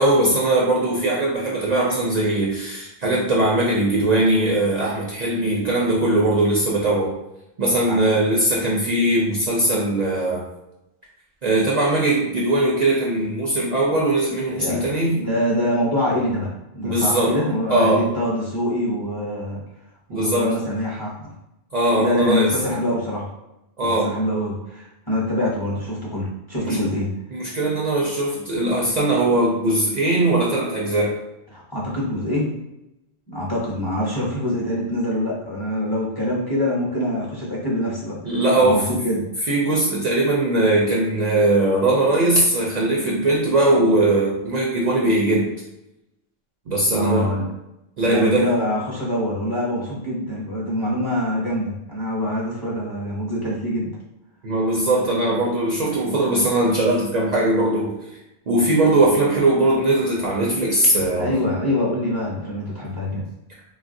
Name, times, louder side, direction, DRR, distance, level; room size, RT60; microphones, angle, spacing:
voice 1, 0.0-7.1 7.6-10.4 11.4-15.2 16.8-17.3 17.7-18.1 20.1-20.5 21.7-22.5 23.8-24.1 26.6-26.8 27.3-31.2 38.2-38.9 39.5-45.5 46.7-47.3 48.0-48.5 54.4-57.9 58.5-61.3, right 1 dB, 50° right, -4 dB, 0.6 m, -20 dB
voice 2, 15.1-16.5 16.7-19.6 20.1-21.3 22.0-23.3 23.8-27.1 31.5-32.5 33.3-39.2 46.9-47.5 48.1-53.9 61.2-63.2, left 1 dB, 25° left, -6 dB, 0.7 m, -25 dB
3.3 x 2.3 x 2.5 m, 0.90 s
omnidirectional pair, 1.0 m